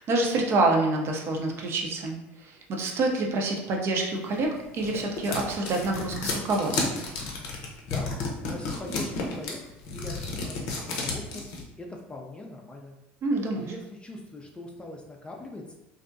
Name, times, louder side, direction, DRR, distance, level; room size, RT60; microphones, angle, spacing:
voice 1, 0.0-2.1 2.4-7.0 13.2-13.7, right 2 dB, 45° right, 1 dB, 0.6 m, -27 dB
sound 1, 4.4-11.6, left 3 dB, 65° left, 0.6 m, -32 dB
voice 2, 8.5-11.5 11.8-13.0 13.6-15.7, left 2 dB, 15° left, 0 dB, 0.4 m, -41 dB
2.6 x 2.1 x 2.5 m, 0.91 s
hypercardioid pair, 75°, 6 cm